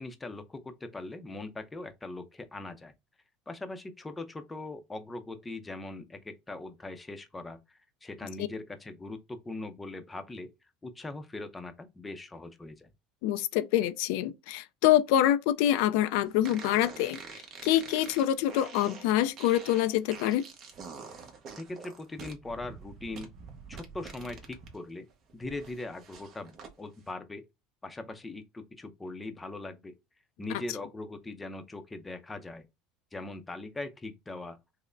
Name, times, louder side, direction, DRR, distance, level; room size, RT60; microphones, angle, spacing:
voice 1, 0.0-2.9 3.5-10.5 10.8-12.9 21.6-23.3 23.7-25.1 25.3-27.4 27.8-29.9 30.4-32.7 33.1-34.6, left 2 dB, 15° left, 0.6 m, -41 dB
voice 2, 13.2-17.2 17.6-20.4, left 12 dB, 75° left, 0.3 m, -25 dB
sound 1, 16.4-24.8 25.1-26.7, right 5 dB, 45° right, 0.9 m, -46 dB
5.1 x 2.0 x 2.5 m
supercardioid pair, 115°, 0 cm